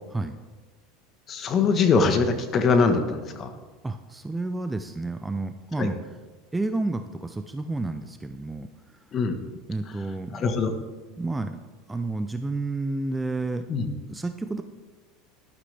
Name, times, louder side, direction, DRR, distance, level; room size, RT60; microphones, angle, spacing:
voice 1, 1.3-3.5 5.8-5.9 9.1-9.4 10.3-10.7 13.7-13.9, left 4 dB, 30° left, 7 dB, 1.3 m, -22 dB
voice 2, 3.8-6.0 6.5-8.7 9.7-10.4 11.2-11.6 11.9-13.6 14.1-14.6, right 2 dB, 10° right, 8 dB, 0.5 m, -30 dB
13.0 x 11.5 x 3.4 m, 1.3 s
supercardioid pair, 135°, 0 cm